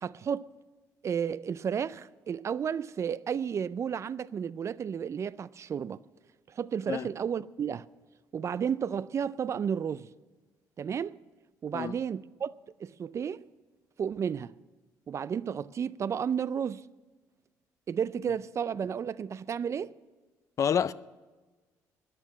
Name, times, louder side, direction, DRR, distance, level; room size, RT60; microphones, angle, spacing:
voice 1, 0.0-0.5 1.0-6.0 6.5-7.9 8.3-10.1 10.8-11.2 11.6-12.5 12.8-13.4 14.0-14.5 15.1-16.8 17.9-19.9, right 7 dB, 45° right, 0.4 m, -32 dB
voice 2, 20.6-20.9, left 8 dB, 50° left, 0.5 m, -27 dB
13.5 x 10.5 x 8.4 m
supercardioid pair, 80°, 7 cm